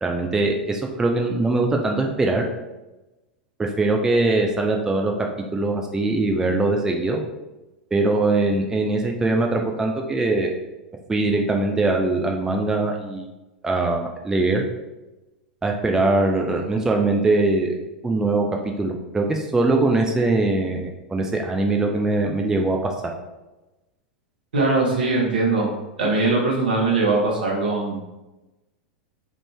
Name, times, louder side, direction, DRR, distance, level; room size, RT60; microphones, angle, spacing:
voice 1, 0.0-2.4 3.6-5.1 5.5-7.2 7.9-10.5 11.1-13.3 13.6-14.6 15.6-17.7 18.0-22.9, right 2 dB, 10° right, 2 dB, 0.3 m, -22 dB
voice 2, 24.5-25.6 26.0-28.0, right 3 dB, 70° right, -3 dB, 1.0 m, -21 dB
3.5 x 2.5 x 3.2 m, 1.0 s
figure-of-eight pair, 85°, 5 cm